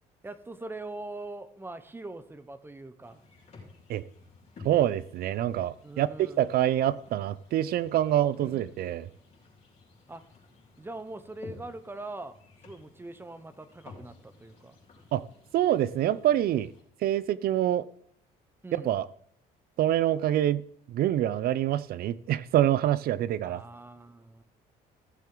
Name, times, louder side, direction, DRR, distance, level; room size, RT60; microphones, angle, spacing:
voice 1, 0.2-3.2 5.8-6.5 8.4-8.8 10.1-10.2 10.8-12.4 12.6-14.8 18.6-18.9 23.5-24.4, right 2 dB, 15° right, 0.8 m, -42 dB
sound 1, 3.0-16.8, left 3 dB, 40° left, 4.2 m, -53 dB
voice 2, 4.6-9.1 15.1-15.2 15.5-16.7 17.0-17.9 18.7-19.1 19.8-23.6, right 12 dB, 65° right, 0.5 m, -26 dB
15.0 x 7.5 x 3.9 m
cardioid pair, 110°, 17 cm